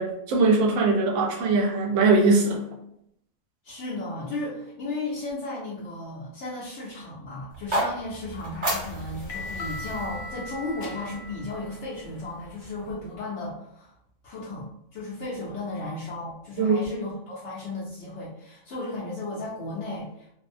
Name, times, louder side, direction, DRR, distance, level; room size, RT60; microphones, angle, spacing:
voice 1, 0.0-2.6 16.6-16.8, right 3 dB, 70° right, 1 dB, 0.9 m, -21 dB
voice 2, 3.6-13.9 14.2-20.4, left 2 dB, 65° left, -7 dB, 0.9 m, -35 dB
sound 1, 7.5-11.6, right 1 dB, 35° right, 1.0 m, -33 dB
sound 2, 8.2-13.0, left 2 dB, 85° left, 1.0 m, -40 dB
2.6 x 2.1 x 2.5 m, 0.77 s
omnidirectional pair, 1.4 m